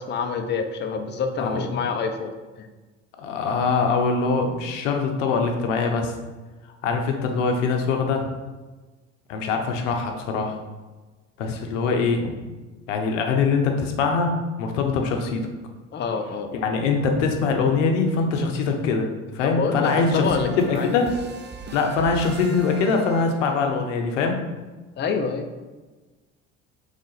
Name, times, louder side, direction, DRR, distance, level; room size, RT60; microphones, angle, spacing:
voice 1, 0.0-2.7 15.9-16.5 19.4-21.0 25.0-25.4, left 5 dB, 30° left, 6 dB, 0.5 m, -27 dB
voice 2, 3.2-6.1 6.8-8.3 9.3-10.6 11.4-12.4 12.9-15.5 16.5-19.1 19.3-20.3 20.6-21.2 21.7-24.4, left 4 dB, 85° left, 3 dB, 0.7 m, -23 dB
sound 1, 19.8-23.7, right 5 dB, 30° right, 0.6 m, -39 dB
3.7 x 3.4 x 3.9 m, 1.2 s
hypercardioid pair, 65°, 36 cm